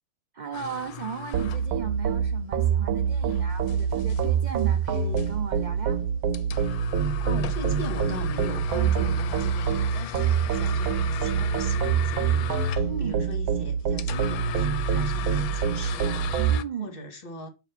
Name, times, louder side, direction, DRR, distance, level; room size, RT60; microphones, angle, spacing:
voice 1, 0.3-6.0 12.9-13.2 16.5-17.0, right 7 dB, 70° right, 0.4 m, -36 dB
sound 1, 0.5-16.6, left 12 dB, 90° left, 1.1 m, -38 dB
sound 2, 1.3-16.6, right 7 dB, 85° right, 1.1 m, -25 dB
voice 2, 7.2-17.5, left 2 dB, 40° left, 1.4 m, -39 dB
7.1 x 2.8 x 5.6 m
omnidirectional pair, 1.5 m